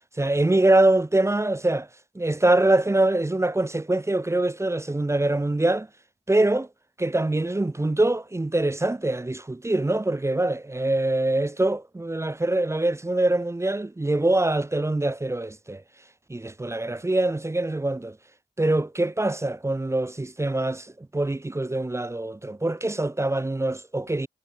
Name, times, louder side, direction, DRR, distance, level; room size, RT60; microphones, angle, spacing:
voice 1, 0.2-1.9 2.2-5.9 6.3-6.7 7.0-15.8 16.3-18.2 18.6-24.3, right 2 dB, 15° right, 0.4 m, -24 dB
cardioid pair, 50°, 20 cm